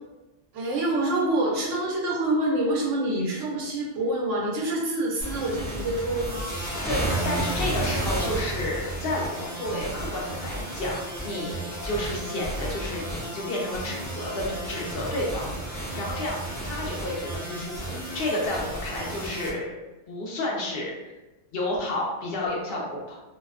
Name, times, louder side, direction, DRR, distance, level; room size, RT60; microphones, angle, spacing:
voice 1, 0.5-6.5, right 1 dB, 85° right, -2 dB, 1.0 m, -26 dB
sound 1, 5.2-19.5, right 1 dB, 20° right, 0.6 m, -32 dB
voice 2, 6.9-19.7 20.1-21.1 21.5-23.2, left 1 dB, 60° left, -2 dB, 0.7 m, -31 dB
2.5 x 2.1 x 2.4 m, 1.1 s
omnidirectional pair, 1.2 m